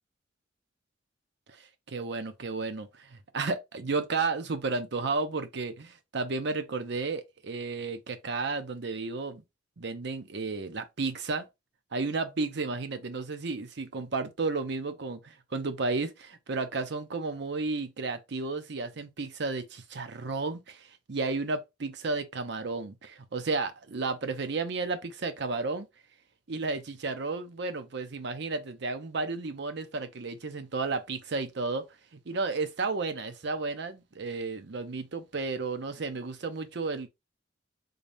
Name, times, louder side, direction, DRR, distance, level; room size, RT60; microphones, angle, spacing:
voice 1, 1.6-9.4 9.8-11.5 11.9-25.9 26.5-31.9 32.1-37.1, right 3 dB, 65° right, 0.7 m, -33 dB
3.8 x 3.4 x 2.6 m
head